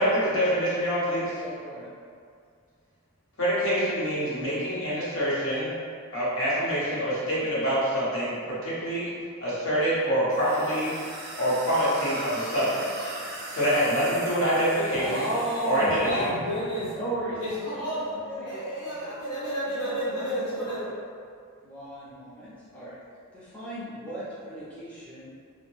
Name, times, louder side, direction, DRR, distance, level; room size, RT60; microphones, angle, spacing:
voice 1, 0.0-1.3 3.4-5.7 6.1-8.4 8.6-9.1 9.4-10.9 11.4-12.8 13.5-15.2 15.7-16.2, equal, 60° left, -9 dB, 0.9 m, -25 dB
voice 2, 1.3-1.9 14.8-15.4 16.1-16.3 17.0-19.2 19.7-20.0 20.3-20.8 21.6-22.9 23.3-25.3, right 1 dB, 5° left, -11 dB, 0.5 m, -38 dB
sound 1, 10.3-16.3, right 1 dB, 45° right, 0.4 m, -39 dB
voice 3, 15.0-17.0 17.4-18.2 18.4-20.9, equal, 85° left, -10 dB, 1.2 m, -31 dB
2.6 x 2.1 x 3.1 m, 2.2 s
head